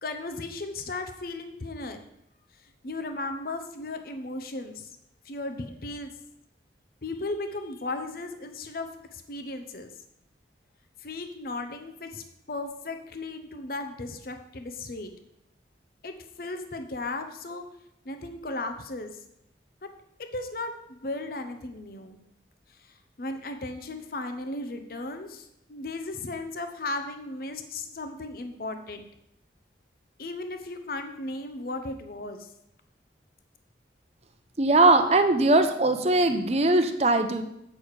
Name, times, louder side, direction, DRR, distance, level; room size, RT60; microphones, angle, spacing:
voice 1, 0.0-2.0 2.8-4.9 5.2-6.1 7.0-9.9 11.0-15.1 16.0-17.6 18.0-19.1 20.2-22.2 22.8-29.1 30.2-32.5, left 2 dB, 55° left, 6 dB, 0.8 m, -36 dB
voice 2, 34.6-37.4, right 2 dB, 35° right, 8 dB, 0.7 m, -20 dB
8.5 x 6.3 x 4.8 m, 0.79 s
head